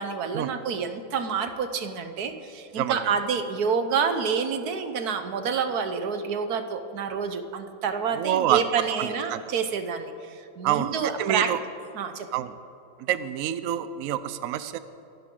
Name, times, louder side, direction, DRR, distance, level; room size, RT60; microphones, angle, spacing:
voice 1, 0.0-11.5 11.9-12.4, right 6 dB, 55° right, 8 dB, 1.4 m, -28 dB
voice 2, 8.2-8.6 9.0-9.4 10.6-10.9 11.2-11.6 12.3-12.5 13.1-14.8, right 12 dB, 85° right, 13 dB, 0.7 m, -26 dB
24.5 x 12.5 x 3.8 m, 2.8 s
omnidirectional pair, 2.1 m